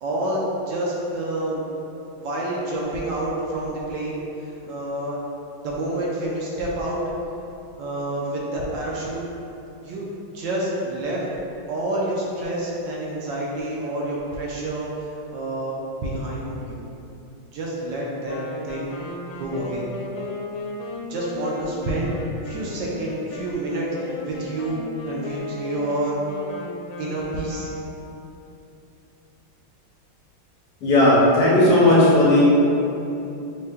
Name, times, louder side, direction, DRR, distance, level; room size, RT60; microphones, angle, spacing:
voice 1, 0.0-1.6 2.2-5.2 5.6-7.0 7.8-9.2 9.8-10.1 10.3-11.2 11.7-16.8 17.5-18.4 18.6-18.9 19.4-19.8 21.1-22.1 22.4-26.2 27.0-27.7, right 1 dB, 75° right, -4 dB, 1.2 m, -28 dB
Wind instrument woodwind instrument, 18.3-28.2, left 2 dB, 80° left, 1.3 m, -35 dB
voice 2, 30.8-32.4, left 1 dB, 60° left, -8 dB, 1.4 m, -15 dB
5.4 x 2.2 x 3.5 m, 2.8 s
omnidirectional pair, 2.2 m